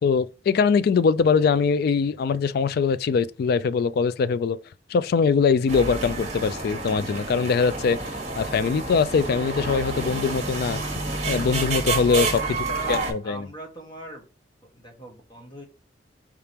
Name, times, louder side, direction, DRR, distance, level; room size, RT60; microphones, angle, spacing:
voice 1, 0.0-4.6 4.9-8.0 8.4-10.8 11.3-12.4 12.9-13.5, left 5 dB, 60° left, 0.3 m, -22 dB
sound 1, 5.7-13.1, right 3 dB, 40° right, 1.3 m, -29 dB
voice 2, 12.3-14.3 14.7-15.7, right 1 dB, 25° left, 1.4 m, -40 dB
4.8 x 3.4 x 2.9 m
head